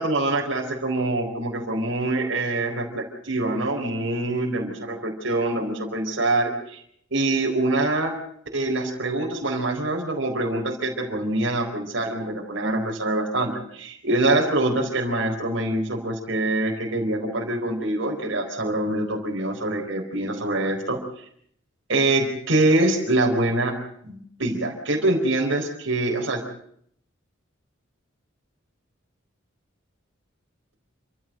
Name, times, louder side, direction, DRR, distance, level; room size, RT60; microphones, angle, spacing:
voice 1, 0.0-6.8 7.1-8.2 8.5-21.0 21.9-23.8 24.0-26.4, right 2 dB, 70° right, 1 dB, 4.3 m, -24 dB
28.5 x 14.5 x 7.6 m, 0.67 s
head